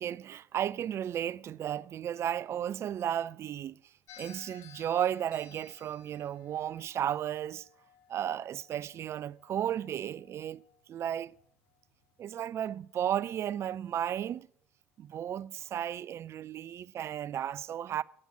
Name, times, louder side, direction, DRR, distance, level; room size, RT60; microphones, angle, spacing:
voice 1, 0.0-3.8 4.2-7.7 8.1-10.6 10.9-11.3 12.2-14.5 15.0-18.0, right 10 dB, 45° right, 0.4 m, -34 dB
sound 1, 4.1-12.4, left 8 dB, 60° left, 1.9 m, -59 dB
9.5 x 6.3 x 8.5 m
hypercardioid pair, 65°, 6 cm